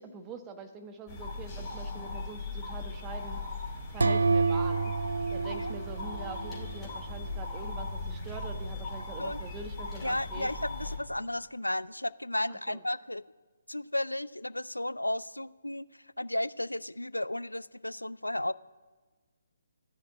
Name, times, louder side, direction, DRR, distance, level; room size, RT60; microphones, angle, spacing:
voice 1, 0.0-4.9 5.3-10.5 12.5-12.8, right 4 dB, 15° right, 6 dB, 1.2 m, -44 dB
sound 1, 1.1-11.0, left 2 dB, 10° left, 3.8 m, -38 dB
sound 2, 4.0-6.8, right 4 dB, 65° right, 0.6 m, -28 dB
voice 2, 10.0-13.2 13.7-15.9 16.2-18.5, left 1 dB, 85° left, 19 dB, 0.3 m, -33 dB
14.0 x 6.5 x 8.7 m, 1.3 s
figure-of-eight pair, 140°, 0 cm